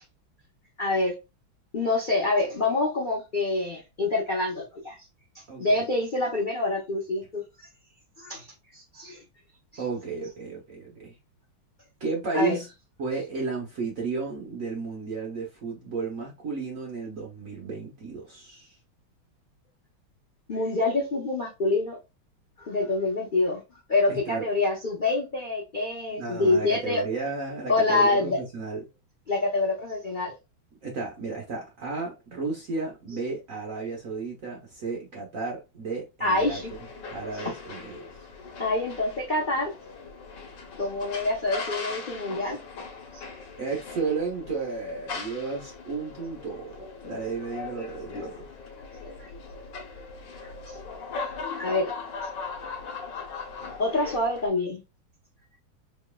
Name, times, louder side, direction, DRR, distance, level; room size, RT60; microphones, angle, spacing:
voice 1, 0.8-1.1 1.7-5.0 5.6-7.7 8.2-8.5 8.7-9.2 12.3-12.6 20.5-22.0 22.6-23.6 23.9-27.0 27.7-28.4 29.3-30.3 36.2-36.7 38.6-39.7 40.8-42.6 43.1-43.2 49.2-49.3 50.4-50.8 51.6-51.9 53.8-54.8, left 2 dB, 85° left, 0.4 m, -26 dB
voice 2, 5.5-5.8 9.8-11.1 12.0-12.7 13.0-18.8 24.1-24.5 26.1-28.8 30.8-36.6 37.1-38.1 43.6-46.8 47.0-48.5, right 4 dB, 65° right, 0.8 m, -33 dB
sound 1, 36.3-54.5, left 4 dB, 65° left, 1.5 m, -39 dB
4.3 x 3.0 x 2.2 m
omnidirectional pair, 2.3 m